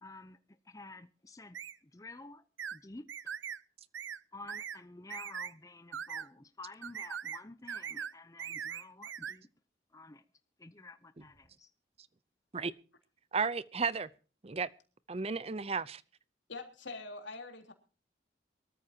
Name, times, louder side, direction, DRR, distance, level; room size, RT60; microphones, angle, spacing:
voice 1, 0.0-0.4 0.6-2.4 2.7-3.4 4.3-9.5 9.9-10.2 10.6-11.7, left 3 dB, 15° left, 0.6 m, -51 dB
sound 1, 1.5-1.8 2.6-2.8 3.1-3.6 3.9-4.2 4.5-4.8 5.1-5.5 5.9-6.3 6.8-7.4 7.7-8.1 8.4-9.4, right 8 dB, 80° right, 0.7 m, -40 dB
voice 2, 13.3-14.1 14.4-14.7 15.1-16.0, right 5 dB, 30° right, 0.6 m, -33 dB
voice 3, 16.5-17.7, left 3 dB, 75° left, 3.4 m, -44 dB
23.5 x 14.0 x 2.8 m
head